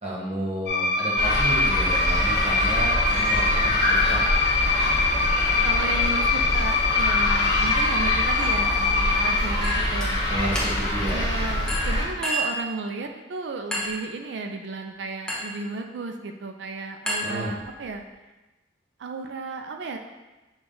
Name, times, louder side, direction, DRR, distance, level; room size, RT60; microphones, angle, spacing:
voice 1, 0.0-4.2 10.3-11.3 17.2-17.5, right 1 dB, 35° right, -5 dB, 1.2 m, -31 dB
sound 1, 0.7-9.4, left 3 dB, 60° left, 0.6 m, -24 dB
sound 2, 1.2-12.1, left 1 dB, 25° left, 1.2 m, -25 dB
voice 2, 5.6-10.2 11.1-18.0 19.0-20.0, right 3 dB, 80° right, 4 dB, 0.4 m, -33 dB
Chink clink, 9.6-10.1 10.6-11.0 11.7-12.7 13.7-14.1 15.3-15.6 17.1-17.9, equal, 5° left, 0.7 m, -30 dB
5.8 x 2.3 x 3.8 m, 1.1 s
head